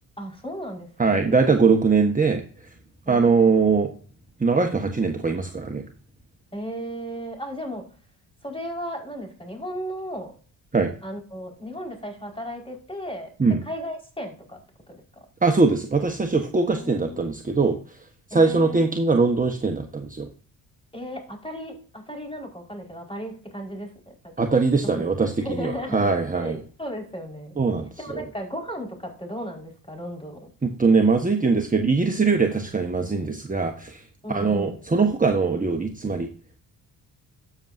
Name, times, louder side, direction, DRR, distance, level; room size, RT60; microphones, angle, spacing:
voice 1, 0.2-1.3 3.0-3.6 6.5-7.8 8.4-10.3 11.0-13.3 13.6-14.6 14.9-15.2 16.7-17.3 18.3-18.9 20.9-24.3 25.4-27.5 28.0-30.5 34.2-34.8, equal, 15° left, 1 dB, 5.1 m, -35 dB
voice 2, 1.0-2.4 3.1-3.9 4.4-5.8 10.7-10.9 13.4-13.6 15.4-17.8 18.3-20.3 24.4-26.6 27.6-28.2 30.6-34.0 34.3-36.3, right 4 dB, 20° right, 3 dB, 1.4 m, -21 dB
13.0 x 7.3 x 2.7 m, 0.41 s
supercardioid pair, 65°, 42 cm